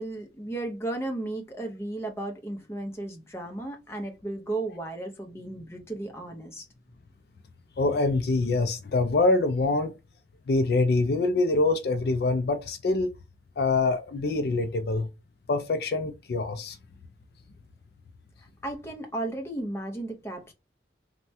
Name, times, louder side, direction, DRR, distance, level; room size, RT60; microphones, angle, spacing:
voice 1, 0.0-6.6 18.4-20.5, right 2 dB, 15° left, 0.6 m, -34 dB
voice 2, 7.8-10.0 10.5-13.2 13.6-15.1 15.5-16.8, left 3 dB, 55° left, 0.3 m, -25 dB
3.2 x 2.1 x 2.6 m
head